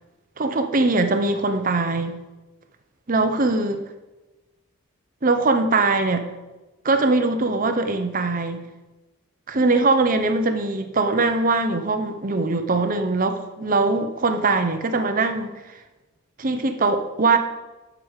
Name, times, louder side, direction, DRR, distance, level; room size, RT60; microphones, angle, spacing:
voice 1, 0.4-2.2 3.1-3.8 5.2-6.3 6.8-8.6 9.5-15.5 16.4-17.4, right 3 dB, 40° right, 7 dB, 0.8 m, -21 dB
11.0 x 5.2 x 6.4 m, 1.1 s
head